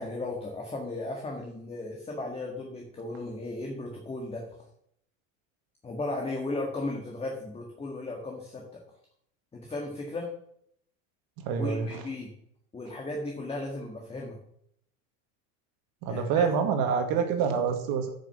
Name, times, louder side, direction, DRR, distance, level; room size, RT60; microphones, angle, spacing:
voice 1, 0.0-4.7 5.8-8.8 9.5-10.3 11.6-12.3 12.7-14.4 16.1-16.5, left 2 dB, 15° left, 0 dB, 1.8 m, -36 dB
voice 2, 11.5-12.0 16.0-18.1, right 6 dB, 55° right, 6 dB, 2.1 m, -26 dB
9.5 x 6.5 x 7.1 m, 0.71 s
supercardioid pair, 125°, 42 cm